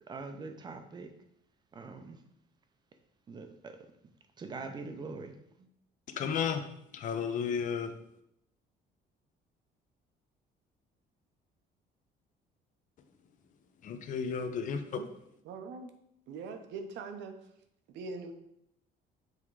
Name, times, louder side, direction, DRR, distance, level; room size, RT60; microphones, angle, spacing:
voice 1, 0.1-1.1 1.7-2.2 3.3-3.8 4.4-5.4, right 4 dB, 25° right, 7 dB, 0.6 m, -43 dB
voice 2, 6.2-6.6 6.9-7.9 13.8-15.0, left 7 dB, 45° left, 8 dB, 0.7 m, -33 dB
voice 3, 15.5-15.9 16.3-17.4 17.9-18.3, right 4 dB, 75° right, 7 dB, 0.9 m, -42 dB
7.8 x 3.6 x 4.7 m, 0.78 s
cardioid pair, 175°, 19 cm